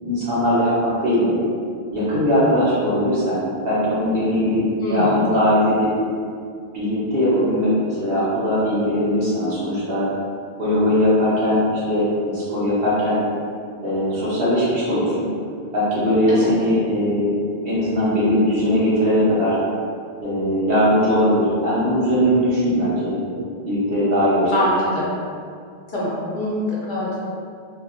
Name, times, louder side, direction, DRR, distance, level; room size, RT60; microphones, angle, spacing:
voice 1, 0.0-1.4 1.9-4.6 4.9-5.9 6.7-10.1 10.6-13.2 13.8-15.3 15.7-17.3 17.6-19.6 20.2-23.4 23.7-24.5, equal, 65° right, -10 dB, 1.2 m, -20 dB
voice 2, 4.8-5.2 16.3-16.5 24.5-25.1 25.9-27.2, left 1 dB, 55° left, -7 dB, 0.8 m, -24 dB
2.8 x 2.5 x 2.5 m, 2.3 s
omnidirectional pair, 1.0 m